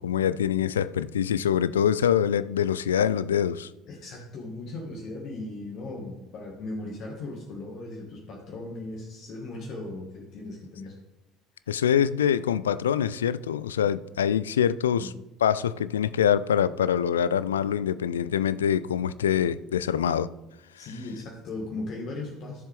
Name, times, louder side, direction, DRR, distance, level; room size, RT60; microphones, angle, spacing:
voice 1, 0.0-3.7 11.7-15.1 15.4-20.3, left 9 dB, 75° left, 0.3 m, -24 dB
voice 2, 3.9-10.9 14.9-15.1 20.8-22.6, left 2 dB, 45° left, 1.7 m, -37 dB
13.0 x 7.3 x 3.5 m
figure-of-eight pair, 60°, 0 cm